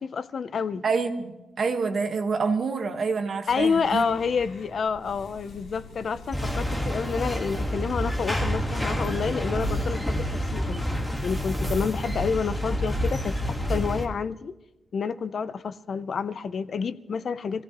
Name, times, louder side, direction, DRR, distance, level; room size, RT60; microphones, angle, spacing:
voice 1, 0.0-0.8 3.5-10.8 11.2-14.5 14.9-17.6, left 5 dB, 45° left, 0.5 m, -29 dB
voice 2, 0.8-4.0, right 4 dB, 45° right, 1.3 m, -27 dB
sound 1, 3.5-9.0, left 2 dB, 65° left, 3.3 m, -47 dB
sound 2, 6.3-14.1, equal, 5° left, 1.5 m, -28 dB
25.5 x 16.5 x 3.0 m
wide cardioid pair, 175°, 0 cm